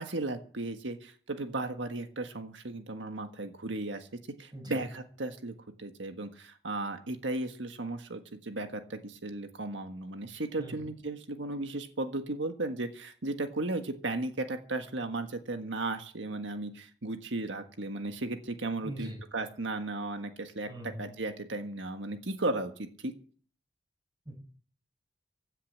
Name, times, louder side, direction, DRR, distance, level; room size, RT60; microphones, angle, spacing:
voice 1, 0.0-4.1 4.4-23.1, right 2 dB, 90° right, 6 dB, 1.6 m, -35 dB
voice 2, 18.8-19.2 20.7-21.1 24.3-24.4, right 1 dB, 25° right, 2 dB, 7.0 m, -41 dB
16.5 x 10.0 x 7.5 m, 0.44 s
head